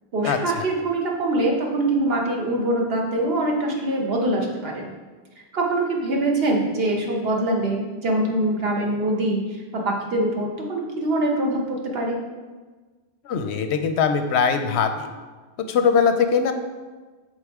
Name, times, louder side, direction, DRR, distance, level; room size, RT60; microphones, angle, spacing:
voice 1, 0.1-4.9 5.5-12.2, right 1 dB, 65° right, 0 dB, 1.2 m, -24 dB
voice 2, 13.2-15.1 15.7-16.5, left 6 dB, 90° left, 8 dB, 0.9 m, -21 dB
7.9 x 4.0 x 3.5 m, 1.3 s
omnidirectional pair, 1.1 m